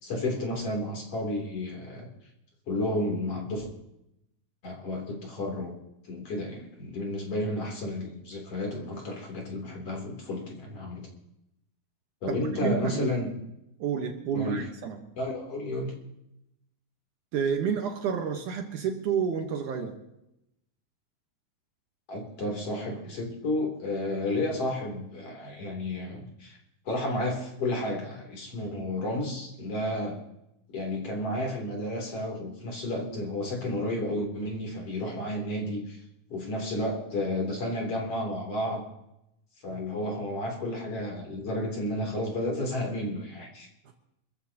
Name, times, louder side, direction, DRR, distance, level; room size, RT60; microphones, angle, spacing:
voice 1, 0.0-2.1 2.7-3.7 4.6-5.7 6.1-11.1 12.2-13.3 14.3-14.6 15.2-15.9 22.1-26.6 26.9-30.2 30.7-36.0 36.3-38.9 39.6-43.7, left 1 dB, 45° left, 0 dB, 3.9 m, -32 dB
voice 2, 12.3-13.1 13.8-15.0 17.3-20.0, right 7 dB, 65° right, 4 dB, 2.4 m, -30 dB
26.0 x 14.0 x 2.9 m, 0.84 s
omnidirectional pair, 4.1 m